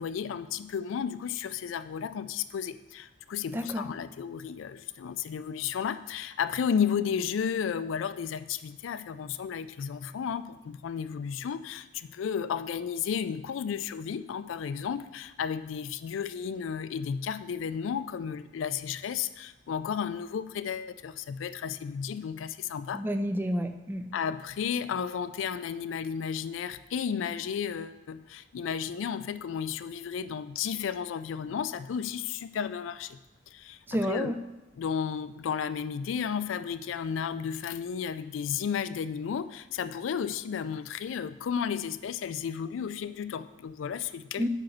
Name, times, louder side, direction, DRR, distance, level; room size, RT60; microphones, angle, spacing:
voice 1, 0.0-23.0 24.1-33.2 33.5-34.3 34.8-44.5, left 7 dB, 85° left, 13 dB, 0.3 m, -33 dB
voice 2, 3.5-3.8 22.9-24.0 33.9-34.4 44.4-44.5, equal, 10° right, 8 dB, 0.3 m, -30 dB
5.2 x 4.9 x 6.0 m, 1.0 s
head